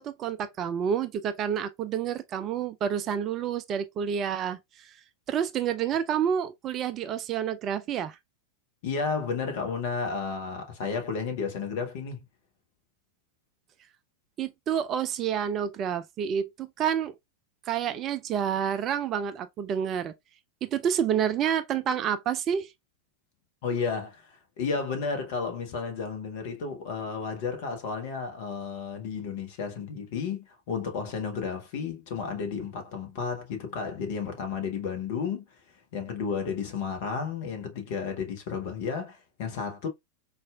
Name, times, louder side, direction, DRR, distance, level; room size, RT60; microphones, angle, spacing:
voice 1, 0.0-5.0 5.3-8.2 14.4-17.1 17.7-20.1 20.6-22.7, right 8 dB, 30° right, 0.3 m, -29 dB
voice 2, 8.8-12.2 23.6-35.5 35.9-39.9, left 5 dB, 50° left, 0.9 m, -32 dB
4.1 x 2.4 x 2.3 m
figure-of-eight pair, 90°, 0 cm